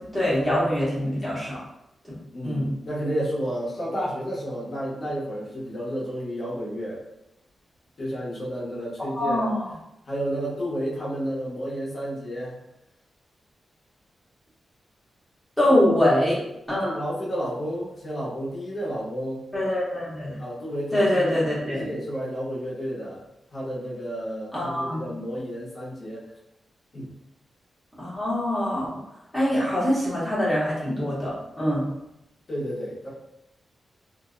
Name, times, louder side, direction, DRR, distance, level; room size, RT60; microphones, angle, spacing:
voice 1, 0.1-1.6 2.1-2.2 2.4-2.7 9.2-9.7 15.6-16.4 16.7-16.9 19.5-20.3 20.9-21.9 24.5-25.1 28.0-28.9 29.3-31.9, left 1 dB, 10° left, -9 dB, 0.8 m, -24 dB
voice 2, 2.3-7.0 8.0-9.5 10.1-12.6 15.7-16.0 16.8-19.4 20.4-21.4 21.7-26.2 26.9-27.1 32.5-33.1, equal, 40° left, -7 dB, 0.9 m, -31 dB
2.6 x 2.0 x 2.4 m, 0.87 s
wide cardioid pair, 175°, 0 cm